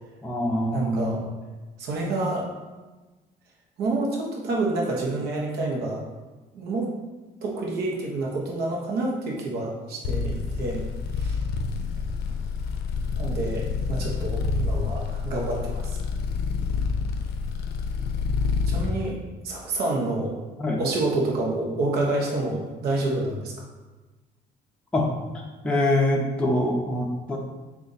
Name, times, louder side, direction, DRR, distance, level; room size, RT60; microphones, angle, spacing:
voice 1, 0.2-1.2 20.6-20.8 24.9-25.1 25.6-27.4, left 1 dB, 5° left, -2 dB, 0.5 m, -24 dB
voice 2, 0.7-1.2 1.8-2.5 3.8-6.0 6.5-6.9 7.4-10.8 11.1-11.4 13.1-16.0 18.7-19.2 19.4-20.4 20.8-23.5, right 2 dB, 75° right, -2 dB, 0.9 m, -28 dB
sound 1, 10.0-19.0, left 5 dB, 70° left, 0.5 m, -28 dB
3.8 x 2.5 x 3.9 m, 1.2 s
cardioid pair, 110°, 17 cm